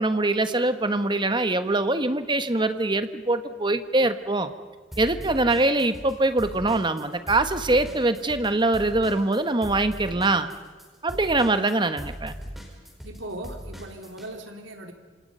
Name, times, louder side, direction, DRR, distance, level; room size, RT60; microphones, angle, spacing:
voice 1, 0.0-4.5 5.0-10.5 11.0-12.4, right 2 dB, 25° right, 9 dB, 1.3 m, -23 dB
sound 1, 4.9-6.1 6.4-14.3, equal, ahead, 4.9 m, -39 dB
voice 2, 13.0-14.9, right 1 dB, 80° right, 4 dB, 3.4 m, -39 dB
27.0 x 27.0 x 5.6 m, 1.5 s
head